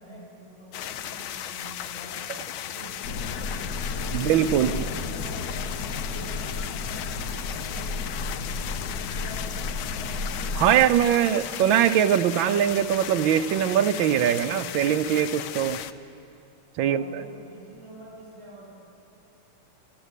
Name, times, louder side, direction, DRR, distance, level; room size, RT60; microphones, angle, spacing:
voice 1, 0.0-3.5 3.9-5.7 6.0-11.7 16.8-18.8, right 1 dB, 40° right, -8 dB, 6.6 m, -46 dB
sound 1, 0.7-15.9, left 11 dB, 85° left, 1.5 m, -36 dB
sound 2, 3.0-10.8, left 3 dB, 55° left, 1.4 m, -33 dB
voice 2, 4.1-4.7 10.6-15.8 16.8-17.0, right 10 dB, 75° right, 11 dB, 1.4 m, -22 dB
25.0 x 14.0 x 8.2 m, 2.7 s
omnidirectional pair, 2.2 m